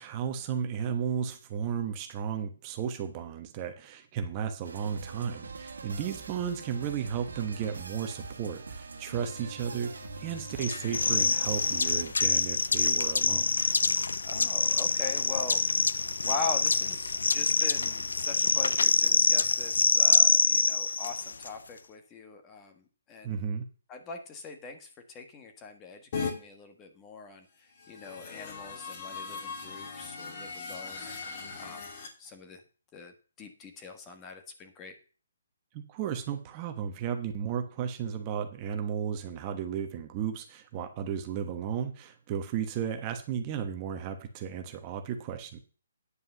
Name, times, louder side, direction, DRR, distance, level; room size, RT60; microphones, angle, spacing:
voice 1, 0.0-13.6 23.2-23.7 35.7-45.6, right 8 dB, 25° right, 6 dB, 1.2 m, -34 dB
sound 1, 4.6-12.1, right 4 dB, 85° right, 1.6 m, -43 dB
sound 2, 10.6-21.5, left 4 dB, 90° left, 0.6 m, -26 dB
voice 2, 14.2-15.6 16.2-23.4 23.9-27.5 27.9-31.2 31.6-31.9 32.2-32.6 32.9-34.9, left 4 dB, 20° left, 6 dB, 1.5 m, -41 dB
sound 3, 26.1-26.3 27.7-32.1, left 5 dB, 40° left, 2.7 m, -38 dB
9.8 x 5.3 x 6.9 m, 0.37 s
hypercardioid pair, 155°, 0 cm